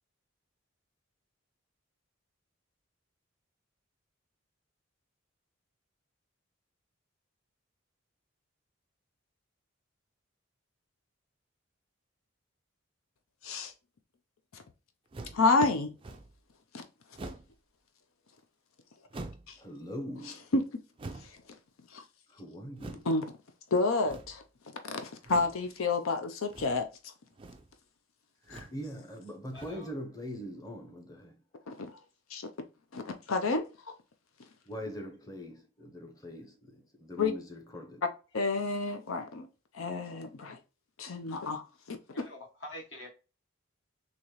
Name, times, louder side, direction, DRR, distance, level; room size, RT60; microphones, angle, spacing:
sound 1, 15.1-15.5 16.0-16.4 17.1-17.6 19.1-19.6 21.0-21.4 22.7-23.1 24.0-24.5 25.2-25.6 26.5-26.9 27.3-27.7 28.4-28.8 29.5-29.9, right 2 dB, 25° right, 0.3 m, -45 dB
voice 1, 15.3-15.9 16.7-16.8 20.5-20.6 21.9-22.0 23.1-23.2 23.7-24.4 24.8-26.9 28.5-28.7 31.7-31.9 32.3-32.5 32.9-33.7 37.2-37.3 38.3-39.5 39.7-40.6 41.0-42.0, left 3 dB, 80° left, 0.6 m, -29 dB
voice 2, 19.6-20.5 22.3-23.1 28.7-31.3 34.7-38.0, equal, 15° left, 0.7 m, -42 dB
voice 3, 29.5-29.9 42.1-43.1, left 1 dB, 60° left, 1.2 m, -45 dB
4.0 x 3.0 x 3.0 m
head